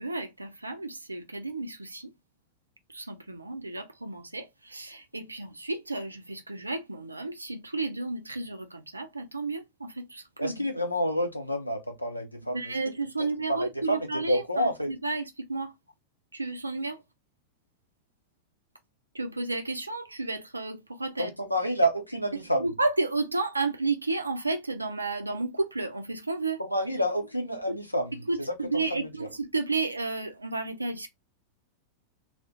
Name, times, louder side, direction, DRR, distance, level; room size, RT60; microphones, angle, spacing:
voice 1, 0.0-2.1 2.9-10.7 12.5-15.7 16.3-17.0 19.1-21.3 22.6-26.6 27.7-27.8 28.3-31.1, right 3 dB, 80° right, 0.4 m, -32 dB
voice 2, 10.4-12.8 13.5-14.0 14.3-14.9 21.2-22.7 26.6-29.3, equal, 90° left, 0.6 m, -29 dB
2.3 x 2.0 x 2.8 m
figure-of-eight pair, 90°, 0 cm